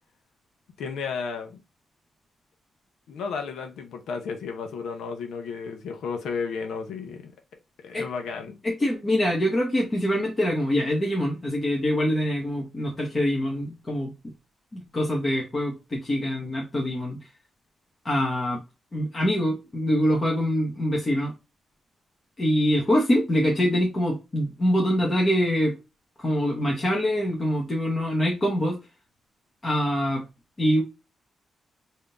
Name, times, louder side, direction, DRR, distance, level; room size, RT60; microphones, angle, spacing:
voice 1, 0.8-1.6 3.1-7.3 7.8-8.6, left 5 dB, 85° left, 0.7 m, -33 dB
voice 2, 8.6-14.1 14.7-17.2 18.0-18.6 18.9-21.3 22.4-25.7 26.2-28.8 29.6-30.2 30.6-30.8, equal, 25° left, 0.9 m, -24 dB
3.7 x 2.7 x 3.4 m
wide cardioid pair, 140°, 0 cm